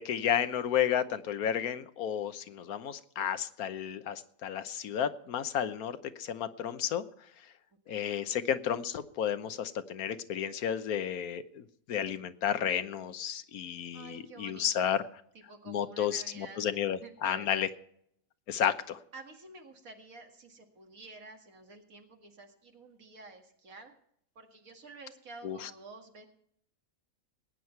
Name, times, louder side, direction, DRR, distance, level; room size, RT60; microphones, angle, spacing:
voice 1, 0.0-7.0 7.9-15.0 15.7-17.7 18.5-19.0 25.4-25.7, left 9 dB, 85° left, 12 dB, 1.3 m, -32 dB
voice 2, 13.9-15.0 15.3-17.7 19.1-23.9 24.4-26.3, right 3 dB, 70° right, 3 dB, 2.4 m, -50 dB
19.5 x 9.5 x 4.5 m, 0.71 s
omnidirectional pair, 1.5 m